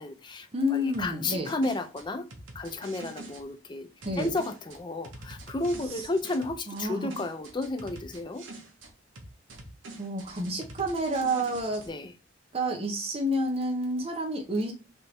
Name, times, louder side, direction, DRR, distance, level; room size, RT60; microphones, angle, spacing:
voice 1, 0.0-2.3 2.5-3.9 4.2-8.5 11.9-12.1, left 2 dB, 20° left, 0.4 m, -32 dB
voice 2, 0.5-1.5 4.0-4.3 6.7-7.1 10.0-11.8 12.5-14.7, equal, 30° right, 0.7 m, -29 dB
sound 1, 0.9-3.4 4.0-6.9 7.1-8.9 9.2-11.9, right 2 dB, 65° right, 0.9 m, -45 dB
3.4 x 2.6 x 4.3 m
head